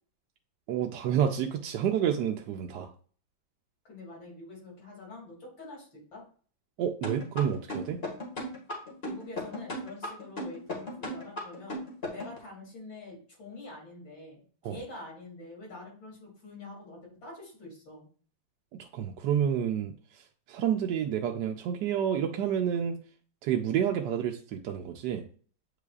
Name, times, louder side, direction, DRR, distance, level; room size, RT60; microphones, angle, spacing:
voice 1, 0.7-2.9 6.8-8.0 14.6-14.8 18.7-19.9 20.5-23.0 23.4-25.3, right 9 dB, 70° right, 3 dB, 1.1 m, -29 dB
voice 2, 3.8-6.2 9.0-11.8 12.1-18.1, left 2 dB, 70° left, -2 dB, 3.2 m, -46 dB
sound 1, 7.0-12.4, left 1 dB, 30° left, 1.9 m, -36 dB
8.2 x 5.0 x 2.4 m, 0.43 s
omnidirectional pair, 2.1 m